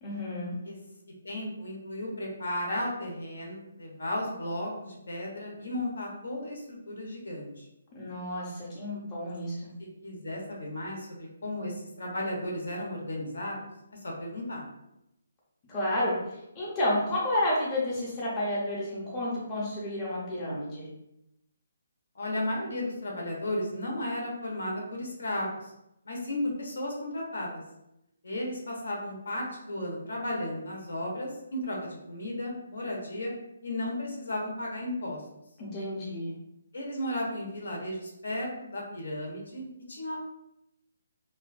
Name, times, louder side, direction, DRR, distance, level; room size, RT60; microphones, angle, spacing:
voice 1, 0.0-0.5 7.9-9.5 15.7-16.1 16.6-20.8 35.6-36.3, left 1 dB, 15° left, -7 dB, 0.6 m, -30 dB
voice 2, 1.2-7.7 10.0-13.6 14.0-14.7 22.1-25.7 26.0-27.6 28.2-33.3 33.6-35.2 36.7-40.2, left 1 dB, 80° left, -1 dB, 0.8 m, -34 dB
2.4 x 2.2 x 2.4 m, 0.85 s
hypercardioid pair, 165°, 0 cm